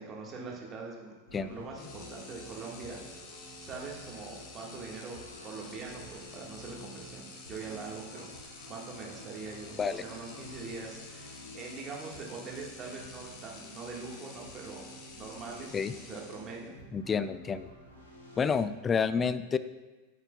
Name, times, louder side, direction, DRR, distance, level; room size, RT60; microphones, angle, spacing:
voice 1, 0.0-3.0 3.6-14.9 15.1-16.8 17.1-17.2, right 4 dB, 25° right, -1 dB, 1.7 m, -43 dB
sound 1, 1.3-18.7, equal, 75° left, 1.8 m, -51 dB
sound 2, 1.8-16.8, left 4 dB, 40° left, 1.2 m, -50 dB
voice 2, 16.9-17.7 18.4-19.6, left 6 dB, 20° left, 14 dB, 0.3 m, -29 dB
9.5 x 8.0 x 2.3 m, 1.2 s
figure-of-eight pair, 90°, 0 cm